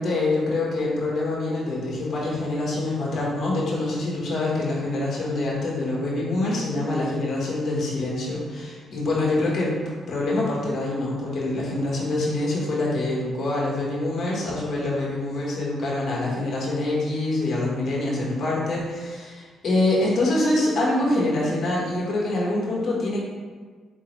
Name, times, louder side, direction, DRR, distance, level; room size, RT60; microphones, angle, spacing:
voice 1, 0.0-9.7 10.1-23.2, left 2 dB, 55° left, -4 dB, 1.2 m, -25 dB
4.1 x 3.7 x 3.1 m, 1.5 s
cardioid pair, 105°, 0 cm